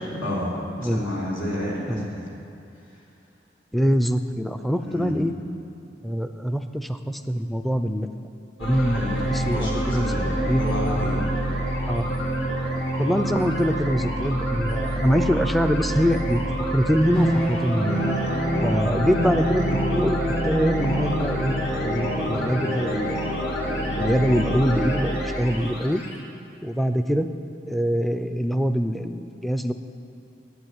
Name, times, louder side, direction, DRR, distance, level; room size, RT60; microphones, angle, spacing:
voice 1, 0.0-2.3 4.9-5.2 8.9-9.2 9.5-11.2, left 1 dB, 85° left, -5 dB, 3.5 m, -30 dB
voice 2, 3.7-5.3 6.0-8.1 8.6-9.0 9.3-10.6 11.9-12.1 13.0-17.9 18.6-20.2 20.4-21.5 21.8-23.3 24.0-26.0 26.6-27.3 27.7-29.7, equal, ahead, 8 dB, 0.4 m, -24 dB
sound 1, 8.6-26.2, equal, 60° left, 2.2 m, -26 dB
11.5 x 8.4 x 8.8 m, 2.8 s
head